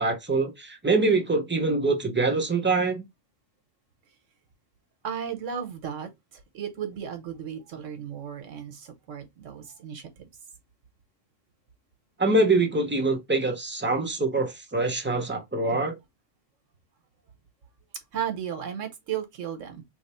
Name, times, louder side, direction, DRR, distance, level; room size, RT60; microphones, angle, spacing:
voice 1, 0.0-3.0 12.2-16.0, right 3 dB, 15° right, 0.4 m, -24 dB
voice 2, 5.0-10.3 15.7-15.8 18.1-19.8, right 8 dB, 75° right, 1.2 m, -35 dB
3.2 x 2.0 x 4.1 m
omnidirectional pair, 1.3 m